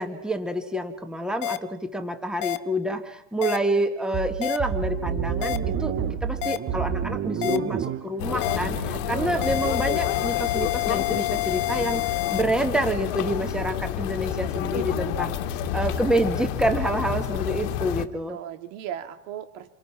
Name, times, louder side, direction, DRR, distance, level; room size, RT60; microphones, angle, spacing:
voice 1, 0.0-5.9 6.2-12.0 12.3-15.4 15.7-18.4, right 1 dB, ahead, 6 dB, 1.7 m, -27 dB
sound 1, 1.4-1.6 2.4-2.6 3.4-3.6 4.4-4.6 5.4-5.6 6.4-6.6 7.4-7.6 8.4-8.6 9.4-12.4, left 16 dB, 50° left, 1.3 m, -27 dB
sound 2, 4.1-9.8, right 8 dB, 30° right, 1.3 m, -30 dB
sound 3, 8.2-18.1, left 10 dB, 70° left, 1.8 m, -29 dB
voice 2, 8.9-9.5 14.7-15.2 18.3-19.7, right 10 dB, 75° right, 7 dB, 2.7 m, -36 dB
29.0 x 23.5 x 5.9 m, 0.82 s
supercardioid pair, 135°, 39 cm